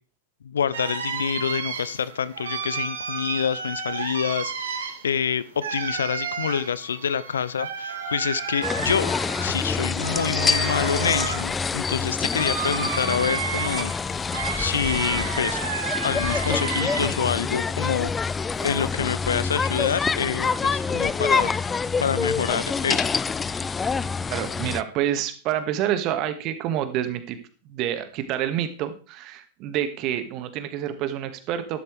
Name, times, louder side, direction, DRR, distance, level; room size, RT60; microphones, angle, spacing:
voice 1, 0.4-9.1 9.4-14.2 14.6-15.6 16.0-18.1 18.6-21.5 22.0-23.1, left 7 dB, 70° left, 18 dB, 0.6 m, -27 dB
sound 1, 0.7-17.4 17.7-18.9, right 6 dB, 70° right, 2.3 m, -32 dB
sound 2, 8.6-24.8, left 5 dB, 15° left, 0.5 m, -26 dB
voice 2, 24.3-27.4 27.7-31.8, right 11 dB, 40° right, 9 dB, 1.9 m, -28 dB
13.0 x 12.0 x 3.4 m, 0.38 s
figure-of-eight pair, 95°, 0 cm